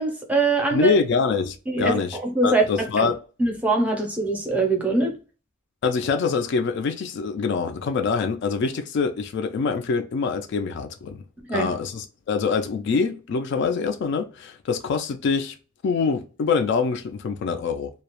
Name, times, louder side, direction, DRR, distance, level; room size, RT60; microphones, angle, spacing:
voice 1, 0.0-0.9 1.7-3.1 3.4-5.1 11.5-11.7, right 3 dB, 5° right, 0.5 m, -23 dB
voice 2, 0.7-3.2 5.8-11.2 11.5-15.5 15.8-17.9, left 5 dB, 60° left, 0.3 m, -25 dB
2.2 x 2.0 x 2.9 m
head